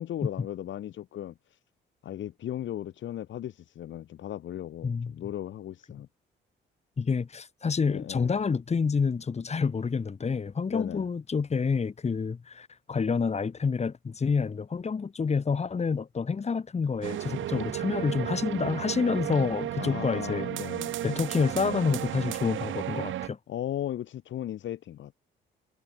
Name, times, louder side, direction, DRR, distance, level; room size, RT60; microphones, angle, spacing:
voice 1, 0.0-1.3 2.0-6.1 7.9-8.4 10.7-11.1 19.8-20.9 23.5-25.1, left 11 dB, 70° left, 3.4 m, -36 dB
voice 2, 4.8-5.1 7.0-20.5 21.0-23.4, left 5 dB, 35° left, 2.0 m, -28 dB
sound 1, 17.0-23.3, right 13 dB, 80° right, 3.9 m, -34 dB
cardioid pair, 90°, 20 cm